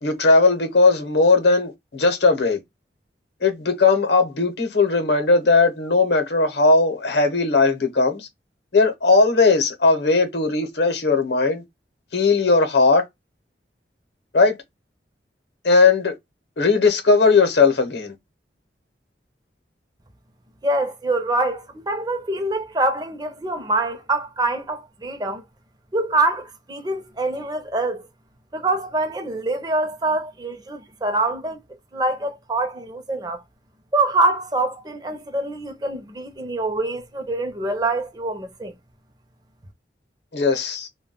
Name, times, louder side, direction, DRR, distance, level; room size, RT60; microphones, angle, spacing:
voice 1, 0.0-2.6 3.4-8.3 8.7-11.6 12.1-13.0 14.3-14.6 15.6-16.1 16.6-18.1 40.3-40.9, left 3 dB, 65° left, 0.8 m, -18 dB
voice 2, 20.6-25.4 25.9-28.0 28.5-31.6 31.9-33.4 33.9-38.7, right 2 dB, 20° right, 0.5 m, -25 dB
2.2 x 2.2 x 3.6 m
head